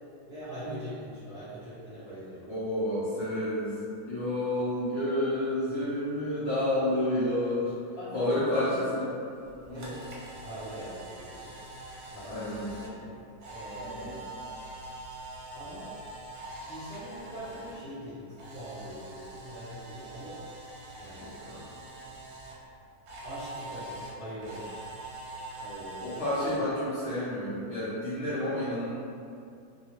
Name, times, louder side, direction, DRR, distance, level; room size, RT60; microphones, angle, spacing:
voice 1, 0.3-2.6 5.7-6.7 7.9-9.0 9.7-10.0 10.4-11.6 12.1-13.2 13.5-14.3 15.5-15.9 16.6-20.4 21.0-21.3 23.2-24.7 25.6-26.1 26.6-26.7 28.2-28.6, right 1 dB, 50° right, -14 dB, 0.6 m, -43 dB
voice 2, 2.5-3.7 4.1-7.7 8.1-9.1 9.7-9.9 12.3-12.6 13.8-14.1 21.1-21.6 26.0-28.9, left 1 dB, 60° left, -11 dB, 0.8 m, -30 dB
Camera, 9.4-17.7 18.0-22.5 23.1-26.6, right 1 dB, 70° right, 1.0 m, -44 dB
2.9 x 2.3 x 2.8 m, 2.5 s
omnidirectional pair, 1.8 m